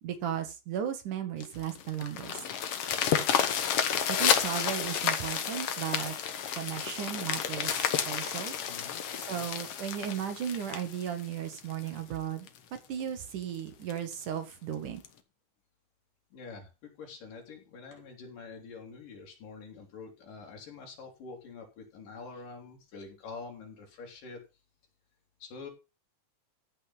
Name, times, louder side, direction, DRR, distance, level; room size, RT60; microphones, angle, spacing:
voice 1, 0.0-2.4 4.1-6.1 6.5-8.5 9.3-12.5 12.9-15.0, right 9 dB, 75° right, 8 dB, 3.3 m, -35 dB
sound 1, 1.4-11.9 12.5-12.6 13.0-13.1 13.4-13.5 13.9-14.2 15.0-15.1, left 8 dB, 55° left, 2.0 m, -31 dB
voice 2, 8.7-9.0 9.3-9.5 16.3-24.4 25.4-25.7, left 4 dB, 85° left, 2 dB, 4.7 m, -46 dB
14.5 x 5.7 x 5.5 m, 0.29 s
omnidirectional pair, 3.7 m